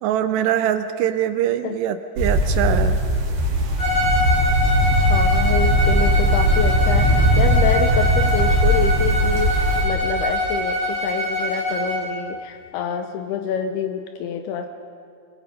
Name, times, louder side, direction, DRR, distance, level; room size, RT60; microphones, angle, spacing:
voice 1, 0.0-3.0, right 10 dB, 80° right, 9 dB, 2.6 m, -23 dB
sound 1, 2.2-9.8, equal, 50° right, 4.1 m, -19 dB
Bowed string instrument, 3.8-12.1, equal, 45° left, 8.0 m, -24 dB
voice 2, 5.0-14.7, left 7 dB, 75° left, 7 dB, 2.4 m, -27 dB
26.5 x 22.0 x 5.2 m, 2.4 s
omnidirectional pair, 5.3 m